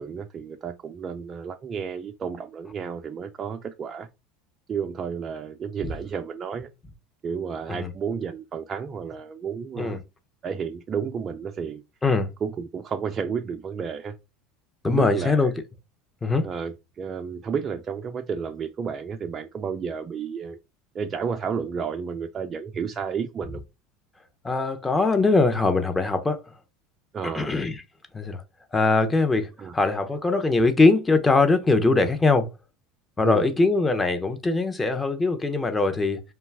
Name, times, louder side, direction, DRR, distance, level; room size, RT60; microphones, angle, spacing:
voice 1, 0.0-4.1 4.7-6.7 7.2-10.0 10.4-11.8 12.4-14.2 14.9-15.5 16.4-20.6 20.9-23.6 27.1-27.5 29.6-29.8 31.9-32.1 33.2-33.5, right 6 dB, 35° right, 0.3 m, -31 dB
voice 2, 14.8-15.5 16.2-16.5 24.4-26.4 27.2-27.8 28.1-28.4 28.7-32.5 33.2-36.2, left 3 dB, 15° left, 0.6 m, -22 dB
2.3 x 2.2 x 3.3 m
hypercardioid pair, 85°, 0 cm